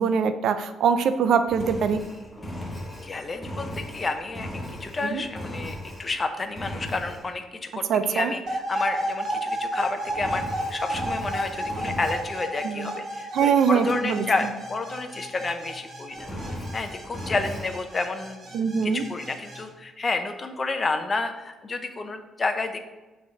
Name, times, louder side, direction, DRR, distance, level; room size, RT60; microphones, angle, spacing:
voice 1, 0.0-2.0 5.0-5.2 7.9-8.3 12.6-12.9 13.3-14.5 18.5-19.1, right 6 dB, 75° right, 10 dB, 0.4 m, -23 dB
Engine, 1.5-6.2 6.5-7.3 10.1-12.4 16.2-17.7, equal, 20° left, 1.2 m, -37 dB
voice 2, 3.0-4.5 4.8-10.4 10.7-16.3 16.7-18.5 18.8-22.8, left 3 dB, 35° left, 7 dB, 0.7 m, -30 dB
sound 1, 8.5-19.6, right 1 dB, 45° right, 2.2 m, -33 dB
6.2 x 3.4 x 5.7 m, 1.1 s
cardioid pair, 90°, 0 cm